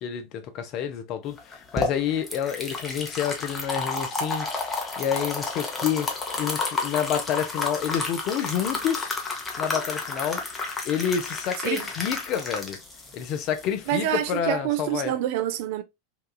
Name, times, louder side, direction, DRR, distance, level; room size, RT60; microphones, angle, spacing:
voice 1, 0.0-4.5 5.0-6.1 6.3-9.2 9.6-10.5 10.8-12.8 13.1-15.2, left 8 dB, 45° left, 0.5 m, -28 dB
sound 1, 1.4-14.4, left 3 dB, 20° left, 0.8 m, -31 dB
voice 2, 13.9-15.8, right 13 dB, 55° right, 0.4 m, -27 dB
2.9 x 2.3 x 2.3 m
figure-of-eight pair, 85°, 0 cm